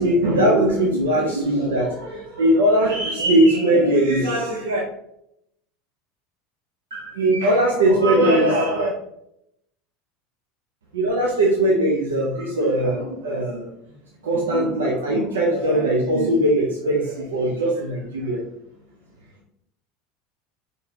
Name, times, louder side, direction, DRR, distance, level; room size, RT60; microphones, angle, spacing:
voice 1, 0.0-4.8 6.9-8.9 10.9-13.7 14.2-18.4, right 1 dB, 85° right, -2 dB, 0.7 m, -20 dB
4.0 x 3.5 x 2.8 m, 0.75 s
hypercardioid pair, 80°, 0 cm